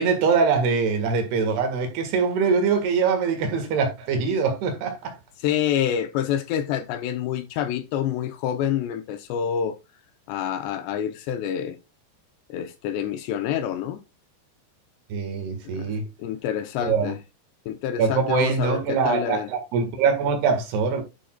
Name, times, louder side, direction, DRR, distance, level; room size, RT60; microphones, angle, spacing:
voice 1, 0.0-5.1 15.1-16.0 16.8-17.1 18.0-21.0, right 5 dB, 65° right, 3.5 m, -23 dB
voice 2, 5.4-9.8 10.3-11.8 12.5-14.0 15.6-15.9 16.2-17.2 17.7-19.5, left 9 dB, 80° left, 2.7 m, -27 dB
11.0 x 8.2 x 2.3 m
omnidirectional pair, 5.4 m